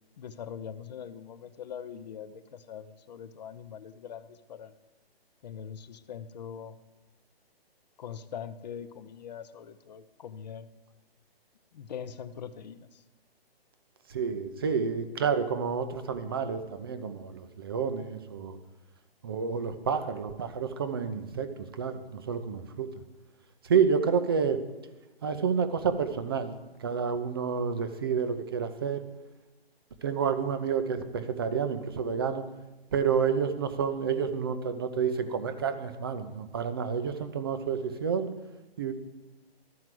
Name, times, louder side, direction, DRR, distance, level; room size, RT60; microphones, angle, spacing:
voice 1, 0.2-4.7 5.4-6.7 8.0-10.7 11.7-13.0, left 8 dB, 45° left, 12 dB, 0.6 m, -42 dB
voice 2, 14.1-18.6 19.2-22.9 23.6-24.6 25.2-26.5 26.8-29.0 30.0-32.4 32.9-38.3 38.8-38.9, right 6 dB, 25° right, 9 dB, 0.4 m, -29 dB
12.5 x 4.7 x 7.6 m, 1.1 s
hypercardioid pair, 155°, 31 cm